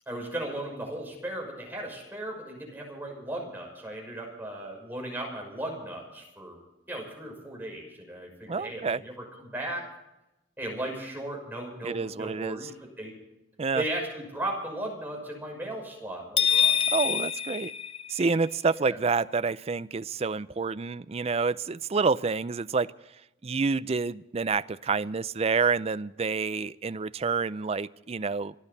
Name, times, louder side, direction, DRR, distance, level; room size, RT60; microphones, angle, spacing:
voice 1, 0.1-6.6 6.9-9.8 10.6-13.2 13.7-16.8 18.7-19.0, right 1 dB, 10° right, 0 dB, 6.0 m, -36 dB
voice 2, 8.5-9.0 11.8-12.6 13.6-13.8 16.9-17.7 18.1-22.9 23.4-28.5, right 4 dB, 35° right, 15 dB, 0.4 m, -28 dB
sound 1, 16.4-18.5, left 8 dB, 30° left, 0.7 m, -26 dB
27.5 x 12.0 x 4.1 m, 0.91 s
head